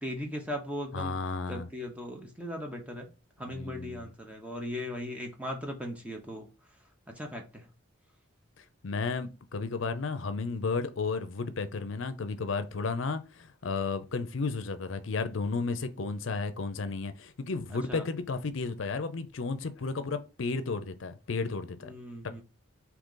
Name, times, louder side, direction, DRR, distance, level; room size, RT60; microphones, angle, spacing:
voice 1, 0.0-1.2 1.5-3.1 3.4-6.5 7.1-7.7 17.9-18.1 21.8-22.4, equal, 5° right, 0.7 m, -38 dB
voice 2, 0.9-1.7 3.5-4.1 8.8-21.9, left 4 dB, 65° left, 0.5 m, -33 dB
3.8 x 2.9 x 3.8 m
head